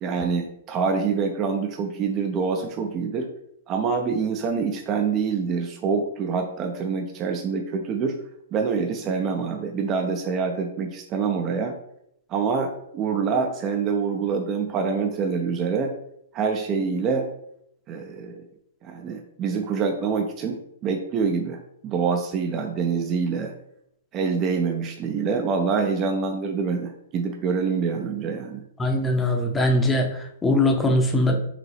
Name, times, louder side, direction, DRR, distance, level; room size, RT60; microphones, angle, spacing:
voice 1, 0.0-3.3 3.7-8.2 8.5-11.8 12.3-15.9 16.3-17.2 17.9-18.4 18.8-23.5 24.1-28.6, right 5 dB, 30° right, 4 dB, 0.5 m, -26 dB
voice 2, 28.8-31.4, left 1 dB, 10° left, 3 dB, 0.7 m, -21 dB
4.8 x 2.7 x 3.3 m, 0.74 s
hypercardioid pair, 125°, 0 cm